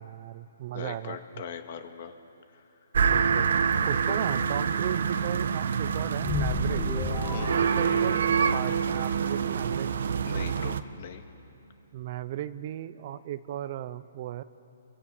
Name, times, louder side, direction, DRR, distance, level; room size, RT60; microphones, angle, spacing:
voice 1, 0.0-1.2 3.0-3.5 3.9-6.8 7.3-8.2 8.5-9.9 11.9-14.4, right 12 dB, 40° right, 14 dB, 0.9 m, -36 dB
voice 2, 0.7-2.1 2.5-2.6 3.4-3.5 4.1-4.2 7.3-7.7 10.3-11.2, left 7 dB, 50° left, 7 dB, 2.2 m, -40 dB
sound 1, 2.9-10.8, right 6 dB, 70° right, 1.2 m, -26 dB
sound 2, 6.2-8.7, left 3 dB, 15° left, 5.4 m, -32 dB
29.0 x 23.0 x 8.5 m, 2.9 s
hypercardioid pair, 150°, 0 cm